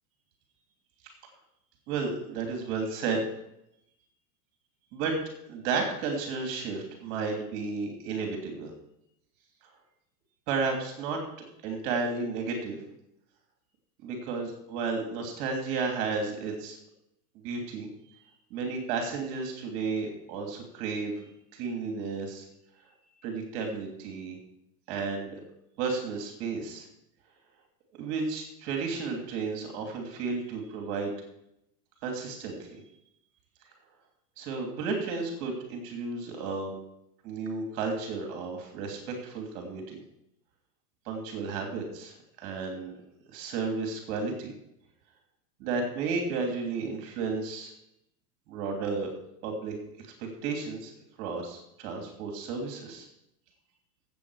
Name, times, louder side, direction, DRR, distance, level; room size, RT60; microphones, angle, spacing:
voice 1, 1.9-3.2 4.9-5.2 5.5-8.7 10.5-11.2 11.6-12.8 14.0-16.8 17.3-17.9 18.5-21.2 21.5-22.4 23.2-24.4 24.9-25.4 25.8-26.9 28.0-31.1 32.0-32.8 34.4-36.7 37.2-40.0 41.0-42.9 43.3-44.5 45.6-47.7 48.5-49.1 49.4-49.8 50.2-50.9 51.2-53.1, right 4 dB, 40° right, 2 dB, 2.9 m, -33 dB
16.0 x 8.0 x 4.9 m, 0.79 s
supercardioid pair, 160°, 48 cm